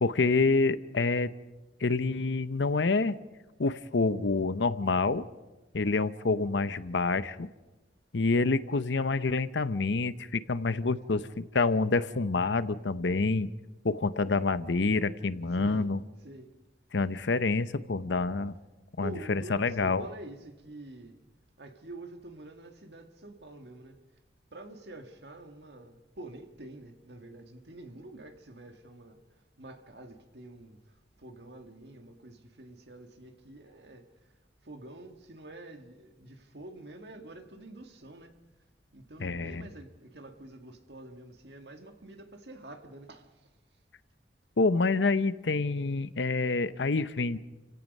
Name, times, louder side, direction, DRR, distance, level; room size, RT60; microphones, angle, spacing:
voice 1, 0.0-1.3 1.8-3.2 3.6-5.3 5.7-7.5 8.1-13.5 13.8-16.0 16.9-18.5 19.0-20.1 39.2-39.7 44.6-47.4, left 3 dB, 80° left, 0.8 m, -27 dB
voice 2, 15.6-15.9 16.2-16.5 19.0-21.2 21.6-24.0 24.5-29.2 29.6-30.8 31.2-34.1 34.6-38.3 38.9-43.3, right 2 dB, 65° right, 1.9 m, -47 dB
29.5 x 16.5 x 5.4 m
head